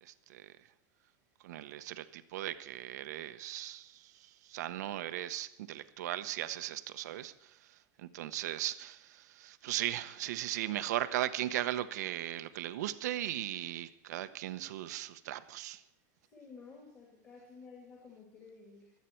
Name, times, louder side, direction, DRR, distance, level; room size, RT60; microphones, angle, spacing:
voice 1, 0.0-0.7 1.4-15.8, right 13 dB, 80° right, 12 dB, 0.9 m, -38 dB
voice 2, 16.3-18.9, left 4 dB, 25° left, -2 dB, 2.5 m, -53 dB
25.0 x 8.3 x 4.5 m, 0.84 s
supercardioid pair, 165°, 9 cm